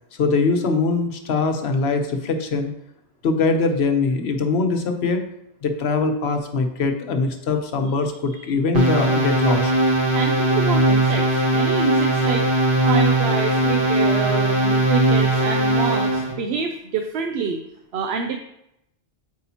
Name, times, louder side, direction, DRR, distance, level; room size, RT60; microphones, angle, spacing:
voice 1, 0.2-2.7 3.2-5.2 5.6-9.7, left 4 dB, 75° left, 5 dB, 1.1 m, -22 dB
sound 1, 8.7-16.3, right 1 dB, 55° right, 1.6 m, -19 dB
voice 2, 10.1-12.6 12.8-17.6 17.9-18.4, right 6 dB, 75° right, 4 dB, 0.8 m, -27 dB
8.4 x 4.8 x 2.8 m, 0.82 s
omnidirectional pair, 1.1 m